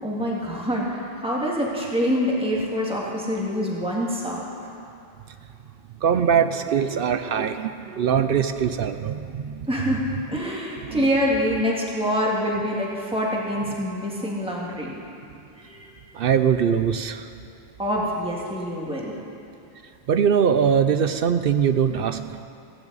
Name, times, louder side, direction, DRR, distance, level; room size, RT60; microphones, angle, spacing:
voice 1, 0.0-4.4 9.7-15.0 15.6-16.1 17.8-19.1, equal, 5° right, -4 dB, 2.0 m, -26 dB
voice 2, 6.0-9.6 10.8-11.1 16.1-17.3 20.1-22.4, right 7 dB, 65° right, 9 dB, 0.7 m, -22 dB
17.5 x 15.5 x 4.0 m, 2.7 s
omnidirectional pair, 1.1 m